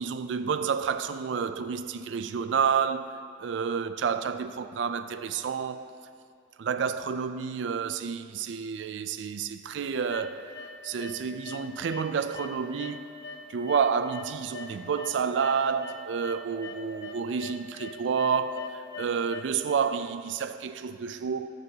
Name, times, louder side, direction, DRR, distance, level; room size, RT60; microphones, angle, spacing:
voice 1, 0.0-5.9 6.6-10.4 10.8-13.1 13.5-21.5, right 6 dB, 80° right, 0.4 m, -29 dB
sound 1, 10.1-10.7 11.0-11.6 11.9-15.1 15.4-19.4, left 3 dB, 70° left, 1.0 m, -41 dB
12.0 x 7.7 x 2.8 m
head